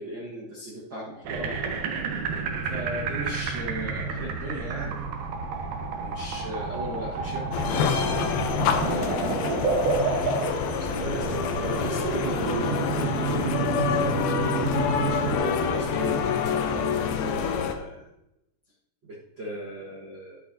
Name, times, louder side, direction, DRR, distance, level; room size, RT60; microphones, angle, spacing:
voice 1, 0.0-1.6 2.7-5.2 5.4-5.5 6.0-7.9 8.8-9.6 10.8-14.2 15.2-18.1 19.0-20.4, right 1 dB, 50° right, -6 dB, 1.3 m, -37 dB
sound 1, 1.2-15.4, right 4 dB, 65° right, 2.3 m, -30 dB
sound 2, 7.5-17.8, left 6 dB, 80° left, 2.5 m, -27 dB
12.0 x 8.4 x 2.8 m, 0.87 s
omnidirectional pair, 4.5 m